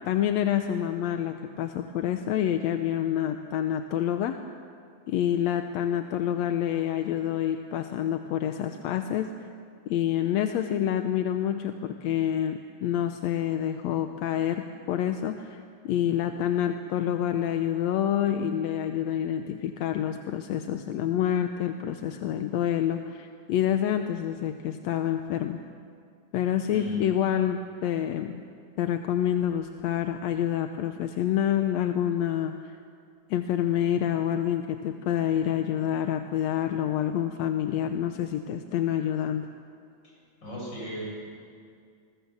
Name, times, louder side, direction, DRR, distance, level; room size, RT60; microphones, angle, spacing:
voice 1, 0.0-4.4 5.1-9.3 9.9-25.6 26.3-28.4 28.8-32.7 33.3-39.5, left 10 dB, 70° left, 7 dB, 1.8 m, -27 dB
voice 2, 26.7-27.1 40.4-41.1, left 1 dB, 35° left, -3 dB, 8.6 m, -35 dB
29.5 x 20.5 x 7.4 m, 2.3 s
omnidirectional pair, 3.6 m